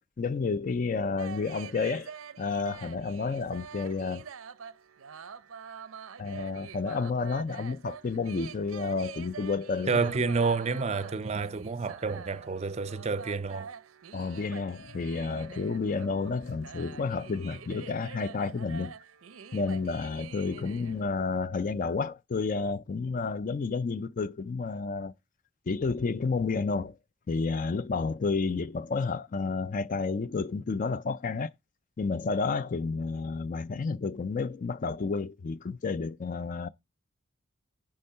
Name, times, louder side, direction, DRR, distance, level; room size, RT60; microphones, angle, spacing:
voice 1, 0.2-4.2 6.2-10.1 14.1-18.9 19.5-25.1 25.7-26.9 27.3-31.5 32.0-36.7, left 4 dB, 40° left, 0.4 m, -31 dB
sound 1, 1.2-21.0, right 6 dB, 80° right, 0.6 m, -46 dB
voice 2, 9.9-13.7, right 4 dB, 30° right, 0.5 m, -29 dB
9.7 x 3.7 x 5.6 m
head